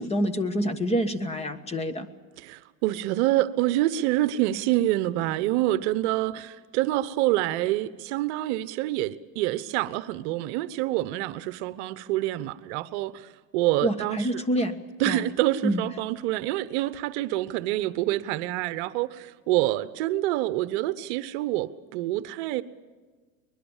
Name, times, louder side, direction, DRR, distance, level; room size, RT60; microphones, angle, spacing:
voice 1, 0.0-2.1 13.8-15.2 15.6-15.8, equal, 15° left, 9 dB, 1.4 m, -27 dB
voice 2, 2.4-14.2 15.0-22.6, right 15 dB, 55° right, 15 dB, 1.0 m, -27 dB
23.0 x 21.5 x 7.3 m, 1.4 s
supercardioid pair, 135°, 42 cm